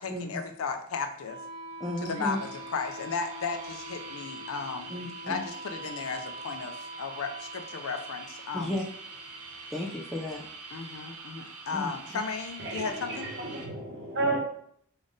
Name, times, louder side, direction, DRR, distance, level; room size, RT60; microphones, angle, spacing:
voice 1, 0.0-1.4 2.0-4.9 5.3-8.8 10.7-13.3, left 5 dB, 65° left, 6 dB, 0.4 m, -35 dB
Wind instrument woodwind instrument, 1.2-11.2, right 1 dB, 25° right, 0.9 m, -45 dB
voice 2, 1.8-2.4 4.9-5.4 8.5-8.8 9.7-10.4 11.7-12.0, left 1 dB, ahead, -2 dB, 0.3 m, -33 dB
sound 1, 2.1-13.7, right 4 dB, 85° right, 0.5 m, -45 dB
voice 3, 12.6-14.4, right 2 dB, 55° right, 0 dB, 0.8 m, -32 dB
3.5 x 2.5 x 3.7 m, 0.66 s
head